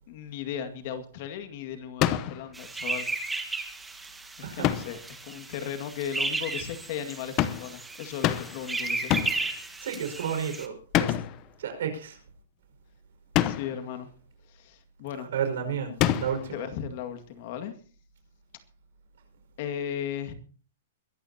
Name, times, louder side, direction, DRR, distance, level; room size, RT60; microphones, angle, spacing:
voice 1, 0.1-3.1 4.4-9.2 13.4-14.1 14.5-15.3 16.5-17.7 19.6-20.3, left 9 dB, 50° left, 8 dB, 2.1 m, -36 dB
sound 1, 2.0-2.5 4.6-5.0 7.4-7.7 8.2-8.7 9.1-9.5 10.9-11.4 13.3-13.8 16.0-16.5, left 12 dB, 35° left, 0.9 m, -26 dB
sound 2, 2.5-10.7, right 3 dB, 5° right, 1.7 m, -34 dB
voice 2, 4.4-4.8 9.8-11.1 11.6-12.2 15.3-16.6, right 7 dB, 70° right, 6 dB, 5.5 m, -32 dB
22.5 x 14.0 x 2.9 m, 0.41 s
hypercardioid pair, 145°, 0 cm